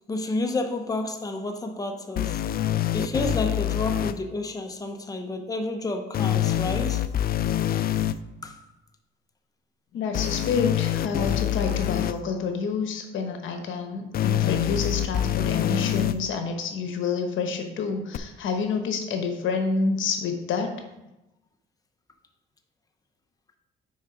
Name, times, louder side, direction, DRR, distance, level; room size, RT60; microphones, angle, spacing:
voice 1, 0.1-2.4 2.9-7.0 8.4-8.6, left 2 dB, 20° left, 0.8 m, -30 dB
sound 1, 2.2-4.1 6.1-8.1 10.1-12.1 14.1-16.1 18.1-18.2, left 12 dB, 50° left, 0.4 m, -25 dB
voice 2, 9.9-20.7, left 5 dB, 75° left, 1.0 m, -28 dB
6.3 x 4.8 x 4.8 m
cardioid pair, 90°, 20 cm